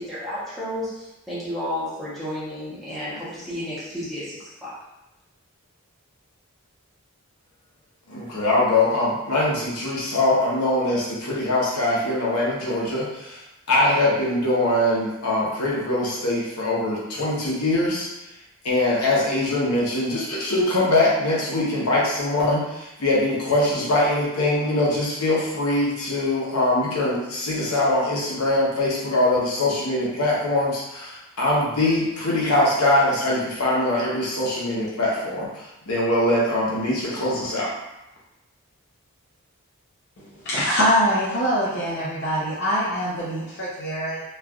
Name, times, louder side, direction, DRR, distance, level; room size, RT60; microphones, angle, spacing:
voice 1, 0.0-4.7, left 1 dB, ahead, -11 dB, 0.8 m, -32 dB
voice 2, 8.1-13.4 13.7-18.1 18.6-35.5 35.9-37.7, left 1 dB, 80° left, -5 dB, 0.9 m, -22 dB
voice 3, 40.2-44.2, equal, 50° left, -8 dB, 0.6 m, -24 dB
3.1 x 2.4 x 2.3 m, 0.94 s
head